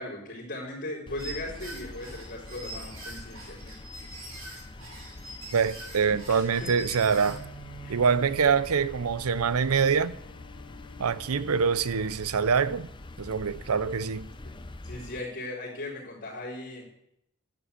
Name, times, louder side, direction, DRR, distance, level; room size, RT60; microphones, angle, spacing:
voice 1, 0.0-3.8 6.0-7.4 7.8-8.0 14.8-16.8, left 1 dB, 45° left, 4.3 m, -38 dB
sound 1, 1.1-15.2, left 2 dB, 20° left, 0.6 m, -45 dB
sound 2, 1.2-7.5, right 1 dB, 65° right, 6.1 m, -43 dB
voice 2, 5.5-7.4 7.9-10.1 11.0-12.9 13.2-14.3, right 6 dB, 80° right, 0.6 m, -25 dB
Bowed string instrument, 6.8-12.3, right 2 dB, 80° left, 1.6 m, -49 dB
11.0 x 9.0 x 8.3 m
head